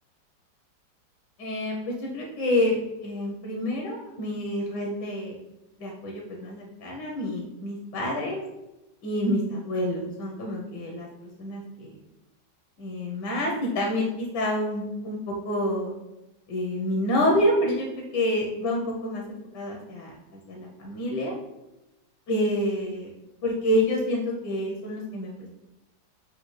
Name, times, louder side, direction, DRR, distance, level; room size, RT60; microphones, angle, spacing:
voice 1, 1.4-5.3 5.8-8.4 9.0-12.0 12.8-16.0 16.5-19.2 19.5-21.3 22.3-23.1 23.4-25.5, left 1 dB, 75° left, -1 dB, 1.4 m, -28 dB
6.7 x 2.3 x 3.1 m, 0.94 s
omnidirectional pair, 1.9 m